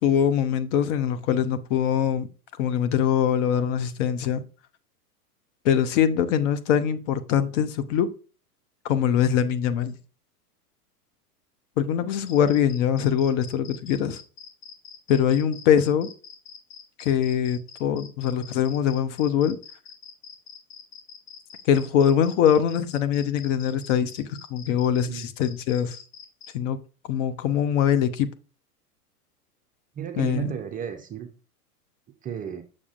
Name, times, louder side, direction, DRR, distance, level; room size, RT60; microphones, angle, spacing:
voice 1, 0.0-2.3 2.6-4.4 5.6-8.1 8.8-10.0 11.8-14.2 15.1-16.1 17.0-19.6 21.7-26.0 26.5-26.8 27.1-28.3 30.2-30.5, left 9 dB, 50° left, 0.8 m, -23 dB
sound 1, 12.1-26.5, left 6 dB, 70° left, 1.5 m, -45 dB
voice 2, 30.0-31.3 32.2-32.6, right 8 dB, 20° right, 0.5 m, -33 dB
7.1 x 6.4 x 2.5 m
hypercardioid pair, 105°, 47 cm